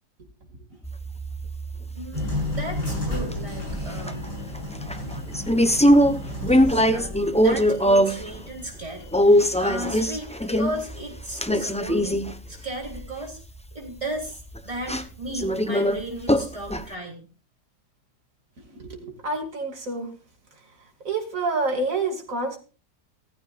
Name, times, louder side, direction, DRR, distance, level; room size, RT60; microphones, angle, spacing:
sound 1, 0.8-2.3 2.9-3.3 3.7-4.3 4.5-8.3 8.6-8.7 9.1-12.5 12.8-13.1 13.5-13.6 14.4-14.6 14.9-15.0 15.3-16.0 16.3-16.8, equal, 10° left, 0.4 m, -21 dB
voice 1, 1.9-4.2 5.8-5.9 6.2-13.4 13.7-17.2, right 1 dB, 20° right, -1 dB, 4.3 m, -36 dB
sound 2, 2.1-9.4, left 1 dB, 80° left, 7.9 m, -33 dB
voice 2, 18.6-20.1 21.0-22.6, right 3 dB, 50° right, 2 dB, 3.0 m, -28 dB
16.0 x 14.0 x 2.5 m, 0.34 s
omnidirectional pair, 1.8 m